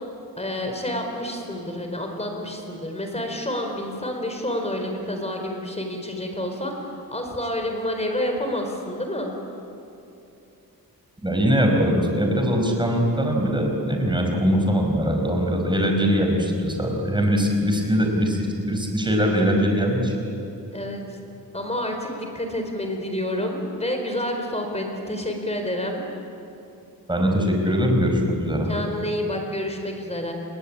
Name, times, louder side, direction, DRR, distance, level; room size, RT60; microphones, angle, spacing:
voice 1, 0.4-6.7 7.1-9.3 20.7-21.0 21.5-22.1 22.3-26.0 28.7-30.3, left 1 dB, 15° left, 3 dB, 4.5 m, -28 dB
voice 2, 11.2-18.4 18.7-20.1 27.1-28.7, equal, 10° right, 1 dB, 5.1 m, -21 dB
29.5 x 22.5 x 8.8 m, 2.8 s
wide cardioid pair, 155°, 37 cm